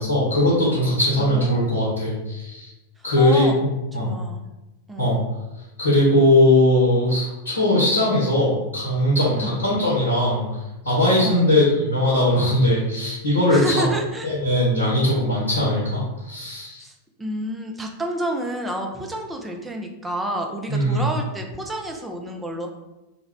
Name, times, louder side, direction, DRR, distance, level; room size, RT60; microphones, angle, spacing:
voice 1, 0.0-2.7 3.0-4.1 5.0-5.2 5.8-10.4 10.8-13.8 14.2-16.8 20.7-21.1, left 1 dB, 80° left, -6 dB, 0.8 m, -20 dB
voice 2, 1.2-1.8 3.0-3.6 3.9-4.4 4.9-5.1 9.4-9.6 11.2-11.5 13.5-14.3 16.8-22.7, right 1 dB, 10° right, 2 dB, 0.4 m, -29 dB
2.3 x 2.1 x 3.3 m, 1.0 s
figure-of-eight pair, 90°, 0 cm